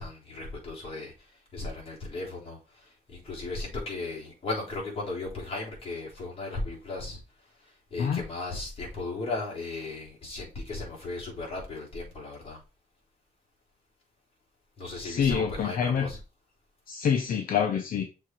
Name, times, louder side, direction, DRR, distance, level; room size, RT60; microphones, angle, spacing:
voice 1, 0.0-7.2 7.9-12.6 14.8-16.2, left 2 dB, 40° left, 3.5 m, -36 dB
voice 2, 15.0-16.1 16.9-18.0, left 7 dB, 65° left, 0.8 m, -26 dB
6.5 x 3.8 x 4.4 m
wide cardioid pair, 175°, 16 cm